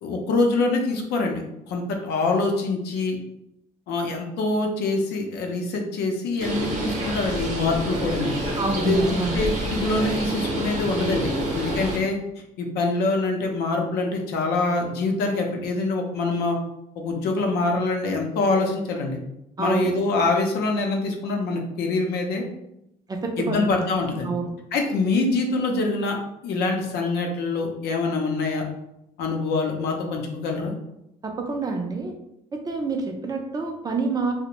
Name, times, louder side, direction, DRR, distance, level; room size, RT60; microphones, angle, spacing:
voice 1, 0.0-1.4 1.7-3.2 3.9-8.4 8.7-12.2 12.6-16.6 17.0-19.2 19.6-22.5 23.4-24.3 24.7-26.2 26.4-28.6 29.2-30.7, left 3 dB, 75° left, 2 dB, 0.5 m, -25 dB
Bird, 6.4-12.0, right 1 dB, 50° right, 0.7 m, -28 dB
voice 2, 8.6-9.4 19.6-19.9 23.1-23.6 24.2-24.5 31.2-32.1 32.7-34.3, right 3 dB, 25° right, 3 dB, 0.4 m, -27 dB
2.5 x 2.0 x 2.9 m, 0.84 s
cardioid pair, 110°, 17 cm